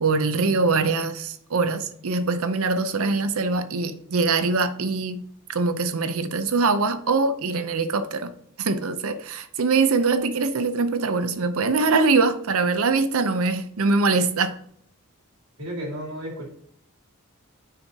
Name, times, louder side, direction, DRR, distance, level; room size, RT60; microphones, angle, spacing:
voice 1, 0.0-5.2 5.5-8.3 8.6-14.5, right 4 dB, 70° right, 0.7 m, -23 dB
voice 2, 15.6-16.5, equal, 85° right, 3.3 m, -33 dB
9.5 x 5.9 x 2.8 m
head